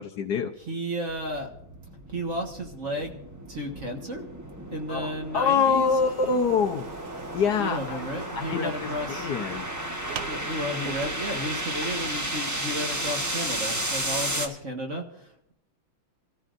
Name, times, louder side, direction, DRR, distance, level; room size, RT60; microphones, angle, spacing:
voice 1, 0.0-0.5 4.9-8.0 8.4-9.7, left 5 dB, 65° left, 4 dB, 1.2 m, -26 dB
voice 2, 0.7-1.5 2.1-3.2 3.5-4.3 4.7-5.9 7.6-9.3 10.3-15.5, equal, 40° right, 1 dB, 1.7 m, -33 dB
sound 1, 1.1-14.5, right 1 dB, 10° right, 0.8 m, -33 dB
sound 2, 5.5-12.6, right 9 dB, 65° right, 0.9 m, -44 dB
27.0 x 14.0 x 2.6 m, 0.74 s
omnidirectional pair, 2.2 m